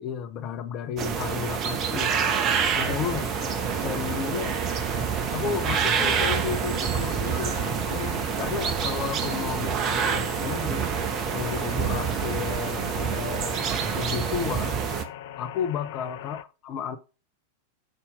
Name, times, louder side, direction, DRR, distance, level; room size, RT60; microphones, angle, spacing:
voice 1, 0.0-2.1 2.8-3.3 3.8-4.6 5.3-10.9 11.3-14.7 15.4-17.0, left 8 dB, 35° left, 0.8 m, -33 dB
sound 1, 1.0-15.0, right 7 dB, 35° right, 1.0 m, -27 dB
sound 2, 2.8-16.4, left 11 dB, 55° left, 0.5 m, -41 dB
sound 3, 7.2-10.2, right 2 dB, 65° right, 2.3 m, -43 dB
6.7 x 4.3 x 5.2 m
figure-of-eight pair, 90°, 0 cm